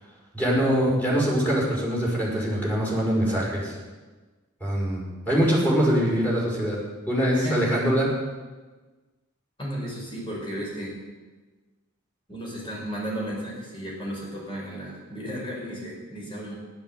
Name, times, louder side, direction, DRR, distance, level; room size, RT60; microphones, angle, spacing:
voice 1, 0.3-3.8 4.6-5.0 5.3-6.8 7.1-8.1, equal, 10° left, -4 dB, 5.6 m, -23 dB
voice 2, 9.6-11.0 12.3-16.6, equal, 25° left, -3 dB, 5.3 m, -34 dB
14.5 x 12.0 x 8.0 m, 1.3 s
head